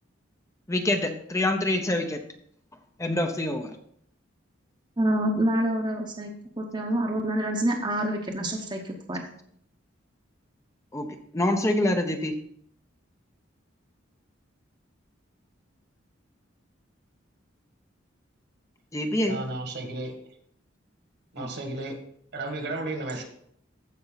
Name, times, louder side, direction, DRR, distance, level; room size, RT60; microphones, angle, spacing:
voice 1, 0.7-2.2 3.0-3.7 10.9-11.1 11.3-12.3 18.9-19.4 21.4-21.5, left 1 dB, 15° left, 5 dB, 0.7 m, -25 dB
voice 2, 5.0-6.3 6.6-9.2, right 1 dB, 25° right, 2 dB, 1.0 m, -27 dB
voice 3, 19.2-20.1 21.3-22.0 22.3-23.2, right 2 dB, 60° right, 4 dB, 1.8 m, -33 dB
15.0 x 5.4 x 4.0 m, 0.67 s
head